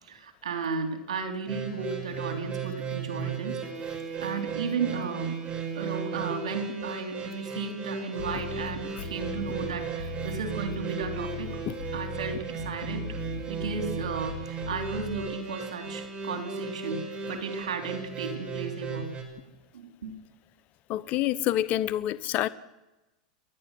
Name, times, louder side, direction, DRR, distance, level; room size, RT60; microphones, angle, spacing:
voice 1, 0.0-3.6 4.2-5.4 5.7-11.6 11.9-13.2 13.5-19.1 19.7-20.2, right 5 dB, 85° right, 6 dB, 3.9 m, -34 dB
sound 1, 1.5-19.2, right 5 dB, 30° right, 5.5 m, -36 dB
sound 2, 8.2-15.2, left 5 dB, 65° left, 5.1 m, -38 dB
voice 2, 20.9-22.5, left 13 dB, 45° left, 16 dB, 1.1 m, -27 dB
30.0 x 11.0 x 9.4 m, 1.0 s
hypercardioid pair, 110°, 3 cm